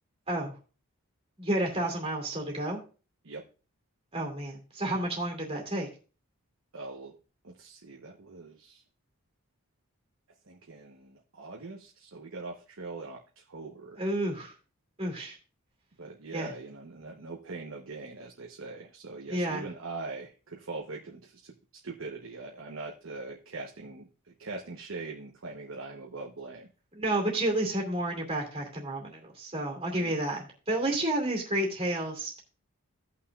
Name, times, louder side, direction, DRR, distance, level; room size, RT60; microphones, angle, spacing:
voice 1, 1.4-2.8 4.1-5.9 14.0-14.5 15.0-15.4 16.3-16.5 19.3-19.6 26.9-32.4, right 1 dB, 25° right, 1 dB, 2.5 m, -30 dB
voice 2, 6.7-7.2 7.4-8.8 10.4-14.0 16.0-21.5 21.8-26.7 30.0-30.1, right 3 dB, 65° right, 0 dB, 1.0 m, -42 dB
16.5 x 5.9 x 2.4 m, 0.35 s
head